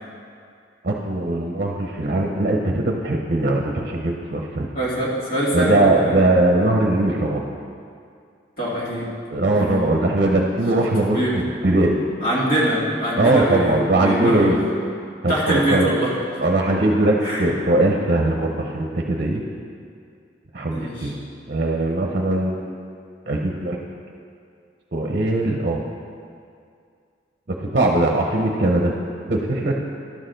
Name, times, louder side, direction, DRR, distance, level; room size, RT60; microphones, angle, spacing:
voice 1, 0.8-4.7 5.5-7.4 9.3-11.2 11.6-12.0 13.2-14.6 15.2-15.9 16.4-19.4 20.5-21.2 21.5-22.8 23.3-23.8 24.9-25.8 27.5-28.9 29.3-29.7, right 2 dB, 45° right, 1 dB, 0.7 m, -20 dB
voice 2, 4.7-6.4 8.6-9.1 9.5-9.9 11.1-11.4 12.2-14.5 15.3-16.1 17.2-17.5 20.7-21.1, right 1 dB, 50° left, -7 dB, 2.3 m, -23 dB
12.0 x 6.5 x 3.9 m, 2.3 s
head